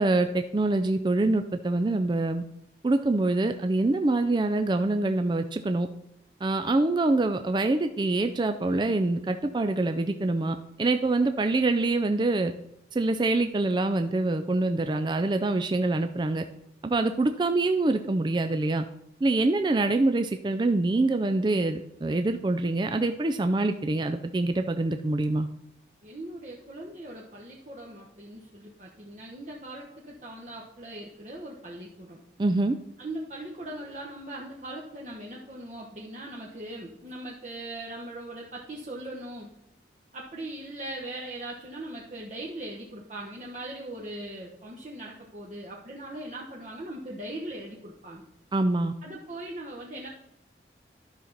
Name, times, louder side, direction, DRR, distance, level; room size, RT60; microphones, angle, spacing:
voice 1, 0.0-2.4 2.8-5.9 6.4-12.5 12.9-16.4 16.8-18.8 19.2-25.5 32.4-32.8 48.5-48.9, right 2 dB, 25° right, 8 dB, 0.3 m, -25 dB
voice 2, 26.0-32.2 33.0-39.5 40.1-48.2 49.0-50.1, right 1 dB, 40° right, -4 dB, 1.1 m, -40 dB
12.0 x 5.8 x 4.0 m, 0.79 s
head